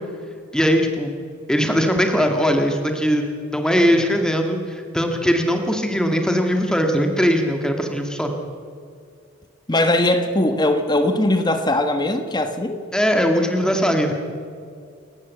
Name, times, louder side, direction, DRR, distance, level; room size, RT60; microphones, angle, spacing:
voice 1, 0.5-1.1 1.5-3.3 3.5-8.3 12.9-14.1, equal, 5° left, 3 dB, 1.8 m, -20 dB
voice 2, 9.7-12.8, left 1 dB, 20° left, 7 dB, 1.2 m, -20 dB
29.0 x 14.5 x 8.3 m, 2.3 s
head